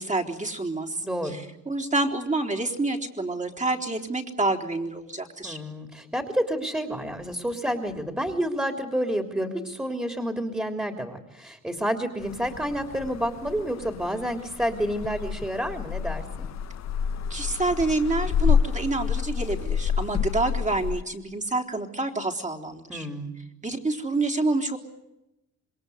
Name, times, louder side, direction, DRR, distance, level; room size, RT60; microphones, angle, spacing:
voice 1, 0.0-5.6 17.3-23.1 23.6-24.8, right 2 dB, 25° right, 2 dB, 4.0 m, -28 dB
voice 2, 1.0-1.4 5.4-16.5 22.9-23.3, equal, 5° right, 6 dB, 3.4 m, -29 dB
sound 1, 12.2-21.0, left 7 dB, 60° left, 1.3 m, -29 dB
27.5 x 22.0 x 8.1 m, 0.91 s
cardioid pair, 90°, 30 cm